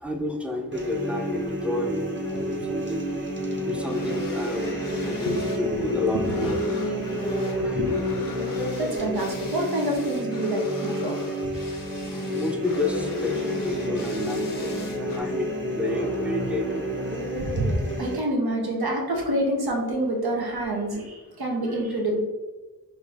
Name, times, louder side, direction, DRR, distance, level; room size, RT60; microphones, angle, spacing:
voice 1, 0.0-3.2 3.7-4.7 4.9-6.9 7.5-7.8 10.9-11.0 12.1-15.5 15.8-17.2, left 1 dB, 5° right, 3 dB, 0.6 m, -30 dB
sound 1, 0.7-18.2, equal, 30° right, 0.9 m, -29 dB
sound 2, 3.8-5.7 5.9-15.2, left 4 dB, 60° left, 0.6 m, -43 dB
voice 2, 7.6-7.9 8.4-11.1 17.4-22.2, right 1 dB, 80° right, -1 dB, 1.1 m, -27 dB
4.2 x 2.7 x 3.4 m, 1.2 s
wide cardioid pair, 70°, 37 cm